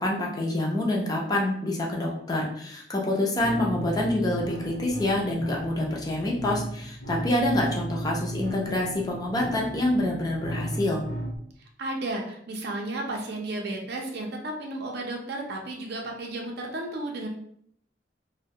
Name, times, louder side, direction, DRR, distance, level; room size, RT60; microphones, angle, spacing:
voice 1, 0.0-11.0, left 1 dB, 20° left, -2 dB, 0.5 m, -27 dB
sound 1, 3.4-11.4, right 1 dB, 50° left, 0.8 m, -35 dB
voice 2, 11.8-17.3, right 2 dB, 65° right, 1 dB, 0.5 m, -33 dB
2.2 x 2.1 x 2.7 m, 0.66 s
head